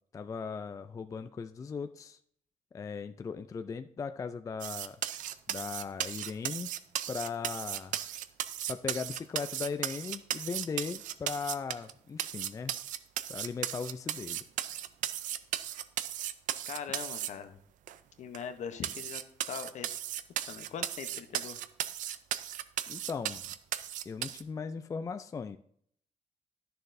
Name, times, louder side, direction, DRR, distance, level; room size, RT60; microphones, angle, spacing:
voice 1, 0.1-2.2 2.7-5.0 5.5-6.7 7.1-8.0 8.7-12.7 13.3-14.4 22.9-23.5 24.1-25.6, left 5 dB, 25° left, 10 dB, 0.3 m, -38 dB
sound 1, 4.6-11.9 12.2-17.3 17.9-18.0 18.3-18.4 18.8-24.4, right 12 dB, 85° right, 0.4 m, -36 dB
voice 2, 16.7-17.6 18.2-19.2 19.5-19.9 20.5-21.6, left 7 dB, 65° left, 9 dB, 0.8 m, -41 dB
11.0 x 6.6 x 2.6 m, 0.66 s
cardioid pair, 110°, 13 cm